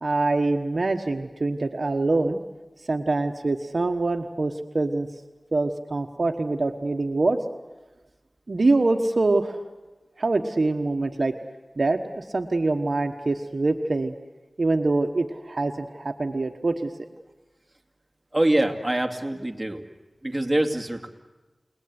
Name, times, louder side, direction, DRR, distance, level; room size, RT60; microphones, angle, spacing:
voice 1, 0.0-2.4 2.8-5.1 5.5-7.4 8.5-9.6 10.2-11.3 11.8-14.1 14.6-16.9, right 2 dB, 65° right, 5 dB, 1.3 m, -24 dB
voice 2, 18.3-19.8 20.2-21.1, right 1 dB, 20° right, 3 dB, 2.5 m, -24 dB
29.5 x 19.0 x 9.7 m, 1.1 s
wide cardioid pair, 60°, 0 cm